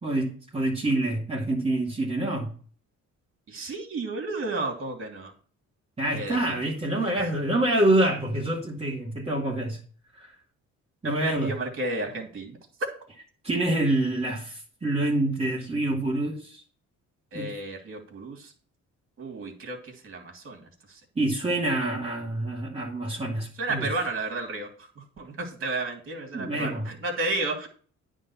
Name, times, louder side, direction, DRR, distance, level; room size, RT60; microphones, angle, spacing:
voice 1, 0.0-2.5 6.0-9.8 10.2-10.3 11.0-11.5 13.4-16.6 17.3-17.5 21.2-23.9 26.3-26.9, right 1 dB, 20° right, 2.2 m, -26 dB
voice 2, 3.5-5.3 6.1-6.4 11.2-12.6 17.3-18.5 19.2-21.0 23.6-24.7 25.0-27.7, right 2 dB, 45° right, 2.7 m, -32 dB
9.6 x 3.8 x 7.1 m
cardioid pair, 90°, 30 cm